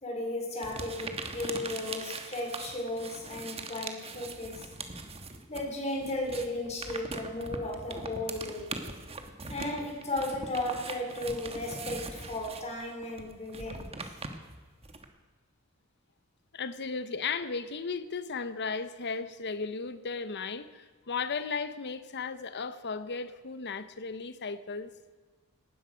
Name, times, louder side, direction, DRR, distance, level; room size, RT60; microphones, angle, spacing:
voice 1, 0.0-4.7 5.5-8.8 9.5-13.9, left 1 dB, 30° left, 4.0 m, -35 dB
sound 1, 0.6-5.7 6.0-15.1, right 3 dB, 25° right, 1.3 m, -41 dB
voice 2, 16.5-24.9, left 5 dB, 50° left, 0.9 m, -35 dB
18.0 x 13.0 x 5.1 m
head